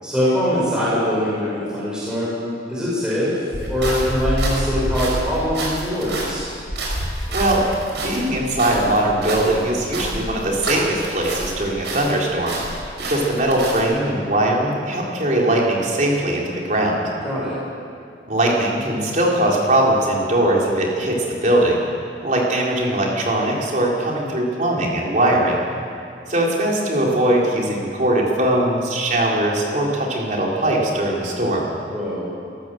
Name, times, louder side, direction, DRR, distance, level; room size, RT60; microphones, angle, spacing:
voice 1, 0.0-6.5 17.2-17.6 31.9-32.3, equal, 5° right, -8 dB, 6.3 m, -23 dB
sound 1, 3.5-11.6 11.8-13.8, right 1 dB, 75° right, 5.3 m, -27 dB
voice 2, 7.3-7.7 8.0-12.6 13.1-17.0 18.3-21.8 22.2-25.6 26.3-31.6, right 1 dB, 45° right, -2 dB, 4.0 m, -20 dB
22.5 x 14.5 x 7.9 m, 2.4 s
head